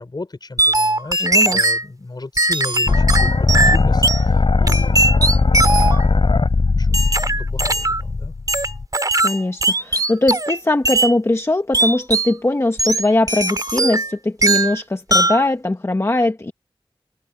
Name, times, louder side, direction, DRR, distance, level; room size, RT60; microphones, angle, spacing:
voice 1, 0.0-1.3 1.5-5.5 6.8-7.3 7.5-8.3, left 3 dB, 50° left, 4.7 m, -35 dB
sound 1, 0.6-1.8 2.4-4.2 4.7-6.1 6.9-8.0 8.5-10.6 10.8-11.1 11.7-12.3 12.8-14.1 14.4-14.8 15.1-15.4, right 2 dB, 40° right, 3.9 m, -19 dB
voice 2, 1.2-1.6 9.2-16.5, left 2 dB, 30° left, 1.2 m, -20 dB
sound 2, 2.9-8.9, left 3 dB, 65° left, 5.9 m, -18 dB
wide cardioid pair, 80°, 9 cm